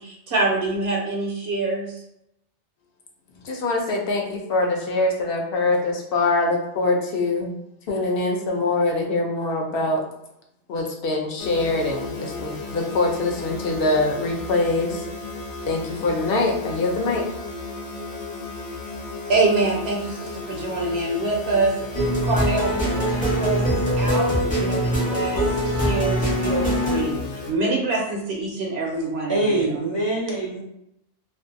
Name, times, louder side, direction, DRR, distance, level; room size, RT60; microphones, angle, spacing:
voice 1, 0.0-2.0 19.3-27.2 27.5-29.6, right 2 dB, 70° right, -1 dB, 0.8 m, -25 dB
voice 2, 3.4-7.6 7.9-10.0 10.7-15.0 15.7-17.2, left 2 dB, 60° left, 1 dB, 0.7 m, -23 dB
sound 1, 11.4-27.5, left 3 dB, 85° left, 0.9 m, -34 dB
sound 2, 21.9-27.0, right 1 dB, 10° left, 0.5 m, -23 dB
voice 3, 29.3-30.6, right 2 dB, 35° right, -7 dB, 0.4 m, -24 dB
2.5 x 2.3 x 2.5 m, 0.81 s
omnidirectional pair, 1.2 m